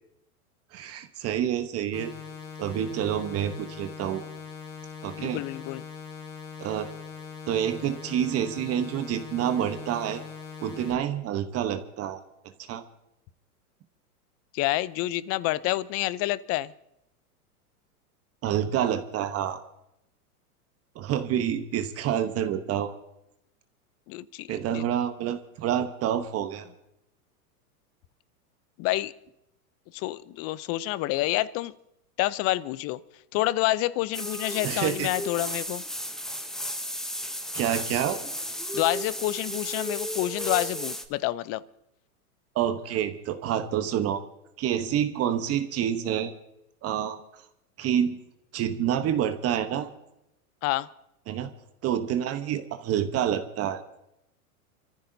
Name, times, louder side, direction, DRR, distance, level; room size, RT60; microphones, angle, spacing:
voice 1, 0.7-2.1 2.6-4.2 5.0-5.4 6.6-6.9 7.5-10.2 10.6-12.2 12.6-12.8 18.4-19.6 20.9-22.9 24.5-26.7 34.6-35.1 37.5-38.2 42.5-44.2 44.6-46.3 46.8-47.2 47.8-48.2 48.5-49.9 51.3-51.5 51.8-53.8, right 10 dB, 30° right, 8 dB, 1.0 m, -28 dB
sound 1, 1.9-10.9, left 6 dB, 90° left, 4.4 m, -41 dB
voice 2, 5.2-5.8 14.5-16.7 24.1-24.8 28.8-29.1 29.9-31.7 32.2-33.0 33.3-35.8 38.7-41.6 50.6-50.9, left 17 dB, 35° left, 19 dB, 0.6 m, -28 dB
sound 2, 34.1-41.1, equal, ahead, 0.7 m, -34 dB
29.5 x 14.5 x 2.7 m, 0.85 s
hypercardioid pair, 110°, 45 cm